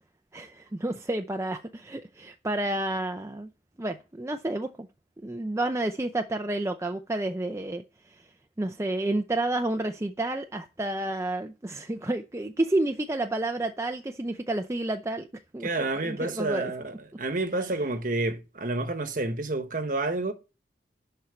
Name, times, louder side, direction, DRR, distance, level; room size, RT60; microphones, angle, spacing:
voice 1, 0.3-3.5 3.8-4.9 5.2-8.2 8.6-15.3 15.5-15.7 16.0-16.7 17.6-17.8, right 2 dB, 15° right, 0.5 m, -30 dB
voice 2, 15.6-20.3, right 2 dB, 50° right, 1.2 m, -29 dB
11.5 x 4.5 x 6.9 m
head